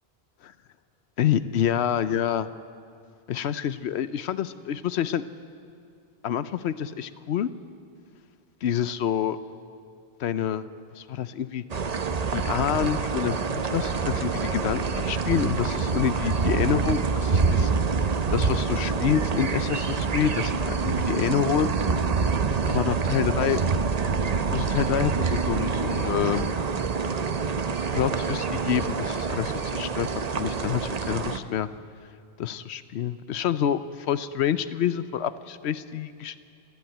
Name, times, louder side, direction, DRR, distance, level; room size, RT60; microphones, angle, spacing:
voice 1, 1.2-2.5 3.3-5.2 6.2-7.5 8.6-9.4 10.2-10.6 11.0-11.6 12.3-17.7 18.0-21.7 22.7-23.6 24.5-26.5 27.9-30.1 30.3-31.7 32.4-36.4, left 9 dB, 90° left, 13 dB, 0.9 m, -27 dB
sound 1, 11.7-31.4, right 5 dB, 40° right, 0.8 m, -26 dB
sound 2, 26.3-31.9, right 4 dB, 25° left, 1.1 m, -46 dB
29.0 x 11.0 x 9.1 m, 2.3 s
omnidirectional pair, 1.1 m